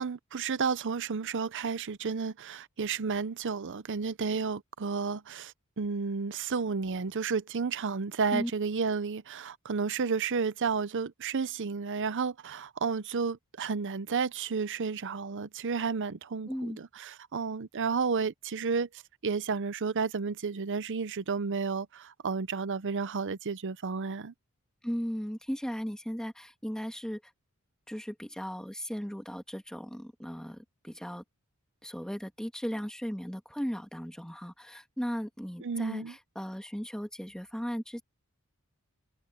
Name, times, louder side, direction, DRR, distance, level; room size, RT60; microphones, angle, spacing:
voice 1, 0.0-18.9 19.2-24.3 35.6-36.1, right 5 dB, 60° right, 0.7 m, -32 dB
voice 2, 16.5-16.8 24.8-27.2 27.9-31.2 31.8-38.0, equal, 5° left, 1.8 m, -36 dB
head